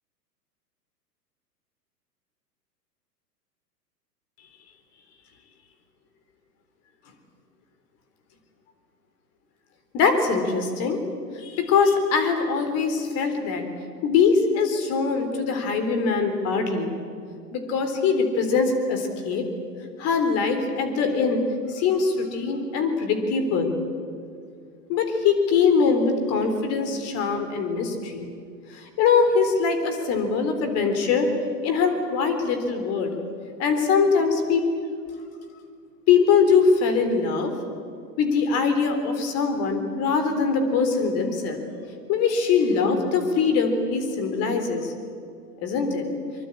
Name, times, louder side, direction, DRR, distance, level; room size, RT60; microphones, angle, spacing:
voice 1, 9.9-11.0 11.3-13.7 14.0-16.9 17.5-19.5 20.0-21.4 21.7-23.7 24.9-28.3 28.7-31.3 31.6-33.1 33.6-34.7 36.1-37.5 38.2-41.6 42.1-44.9 45.6-46.0, left 5 dB, 30° left, 6 dB, 3.8 m, -22 dB
24.0 x 24.0 x 8.6 m, 2.3 s
figure-of-eight pair, 105°, 50 cm